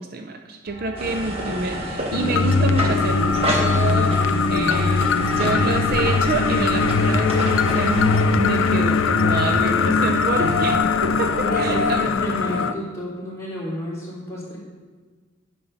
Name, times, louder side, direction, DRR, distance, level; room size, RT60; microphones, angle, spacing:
voice 1, 0.0-12.1, right 3 dB, 45° right, 5 dB, 0.5 m, -28 dB
sound 1, 0.7-8.8, equal, 85° right, 2.8 m, -38 dB
sound 2, 1.0-8.3, equal, 30° right, 1.3 m, -29 dB
sound 3, 2.1-12.7, left 4 dB, 75° left, 0.5 m, -20 dB
voice 2, 4.5-5.7 10.3-10.8 11.2-14.6, equal, 15° left, -7 dB, 3.0 m, -31 dB
9.7 x 7.0 x 5.5 m, 1.4 s
head